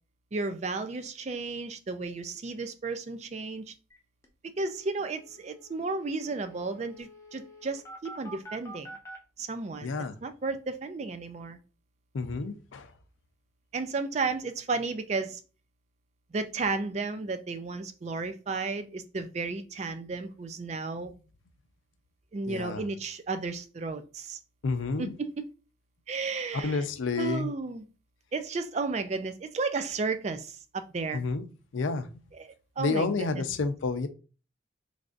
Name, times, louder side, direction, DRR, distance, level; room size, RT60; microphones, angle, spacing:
voice 1, 0.3-3.7 4.6-8.9 9.4-10.0 10.2-11.6 13.7-15.4 16.3-21.1 22.3-24.4 25.0-25.3 26.1-26.8 27.2-27.8 28.3-31.2 32.4-32.5 32.8-33.4, right 3 dB, 35° right, 0.3 m, -33 dB
sound 1, 3.9-4.0 4.2-4.3 4.6-9.2, right 1 dB, 15° left, 0.6 m, -48 dB
voice 2, 9.8-10.2 12.1-12.9 21.0-21.2 22.5-22.9 24.6-25.1 26.6-27.5 31.1-32.2 32.8-34.1, left 4 dB, 90° left, 0.5 m, -30 dB
3.3 x 2.5 x 3.7 m
head